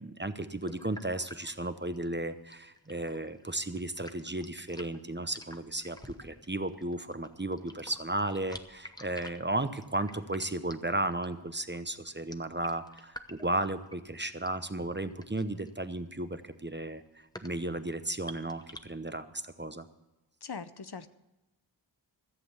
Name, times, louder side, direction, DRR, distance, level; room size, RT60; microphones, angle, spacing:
voice 1, 0.0-17.0 17.4-19.8, right 2 dB, 25° right, 10 dB, 0.8 m, -34 dB
sound 1, 0.6-18.8, left 1 dB, 10° left, 1.0 m, -51 dB
voice 2, 20.4-21.1, left 5 dB, 55° left, 11 dB, 0.8 m, -41 dB
14.5 x 7.7 x 6.9 m, 1.0 s
wide cardioid pair, 45°, 45 cm